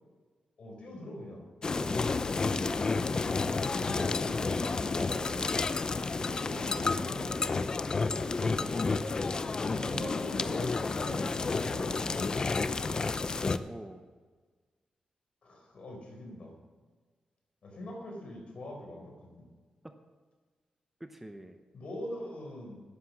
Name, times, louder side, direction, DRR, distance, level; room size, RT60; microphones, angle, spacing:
voice 1, 0.6-1.4 2.5-2.9 3.7-5.4 6.4-7.8 9.7-12.5 15.4-16.5 17.6-19.5 21.7-22.8, left 1 dB, 55° left, 1 dB, 4.2 m, -42 dB
sound 1, 1.6-13.6, left 4 dB, 35° left, 0.5 m, -31 dB
voice 2, 8.4-8.7 9.8-10.0 13.7-14.1 19.8-20.0 21.0-21.6, right 1 dB, 10° right, 6 dB, 0.7 m, -45 dB
12.0 x 9.9 x 6.0 m, 1.4 s
wide cardioid pair, 125°, 2 cm